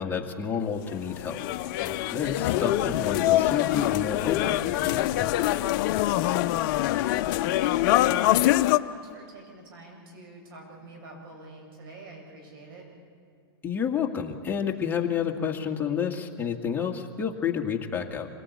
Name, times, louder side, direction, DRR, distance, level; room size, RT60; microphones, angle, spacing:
voice 1, 0.0-1.4 1.8-5.3 13.6-18.3, left 7 dB, 15° left, 0 dB, 2.0 m, -30 dB
sound 1, 0.8-8.8, left 15 dB, 50° left, 0.7 m, -24 dB
voice 2, 6.3-12.8, right 2 dB, 65° right, 1 dB, 7.7 m, -46 dB
26.0 x 19.0 x 8.5 m, 2.2 s
hypercardioid pair, 125°, 13 cm